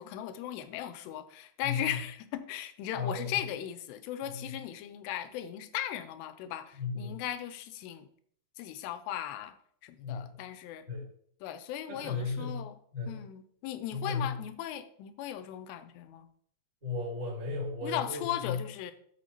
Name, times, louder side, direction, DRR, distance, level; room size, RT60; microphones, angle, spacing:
voice 1, 0.0-8.1 8.6-9.6 9.8-10.9 11.4-12.8 13.1-16.3 17.8-18.9, left 11 dB, 85° left, 11 dB, 2.8 m, -37 dB
voice 2, 1.6-1.9 2.9-3.3 4.2-4.5 6.7-7.2 10.0-10.4 10.9-11.1 11.9-12.7 12.9-13.2 13.9-14.4 16.8-18.6, left 4 dB, 15° right, -4 dB, 1.6 m, -35 dB
12.5 x 5.8 x 2.9 m, 0.64 s
omnidirectional pair, 4.9 m